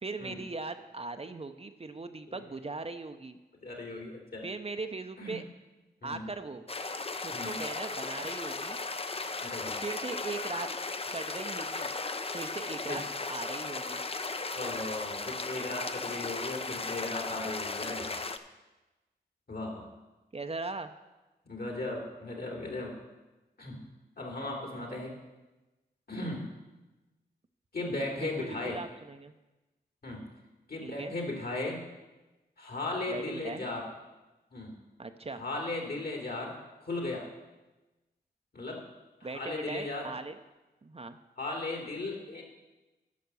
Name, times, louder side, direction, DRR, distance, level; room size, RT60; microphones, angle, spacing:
voice 1, 0.0-3.4 4.4-5.4 6.0-6.6 7.2-8.8 9.8-10.7 11.1-11.9 12.3-13.0 13.3-14.0 20.3-20.9 28.2-29.3 30.8-31.1 33.1-33.7 35.0-35.4 39.2-40.4 40.8-41.2, right 3 dB, 35° right, 8 dB, 0.7 m, -39 dB
voice 2, 3.6-4.4 5.2-5.4 6.0-6.3 7.3-7.6 9.4-9.7 12.9-13.0 14.5-18.2 19.5-19.9 21.4-22.9 23.6-23.8 24.2-25.1 26.1-26.4 27.7-28.8 30.0-30.2 30.7-31.8 32.6-33.9 34.5-34.7 35.4-36.5 36.8-37.3 38.5-38.8 39.2-40.1 41.4-42.4, left 2 dB, 60° left, 0 dB, 2.8 m, -36 dB
sound 1, 6.7-18.4, left 3 dB, 35° left, 0.7 m, -36 dB
10.5 x 5.8 x 6.8 m, 1.1 s
cardioid pair, 50°, 18 cm